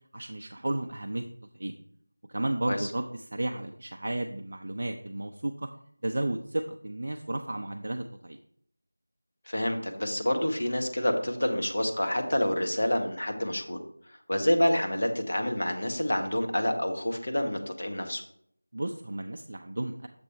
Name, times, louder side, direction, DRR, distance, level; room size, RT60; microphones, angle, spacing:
voice 1, 0.1-1.3 1.5-1.8 2.3-5.7 6.0-8.4 18.7-20.1, right 1 dB, 35° right, 4 dB, 0.4 m, -33 dB
voice 2, 9.5-13.8 14.3-18.2, left 1 dB, 45° left, 4 dB, 1.0 m, -28 dB
6.8 x 4.9 x 4.2 m, 0.66 s
figure-of-eight pair, 180°, 0 cm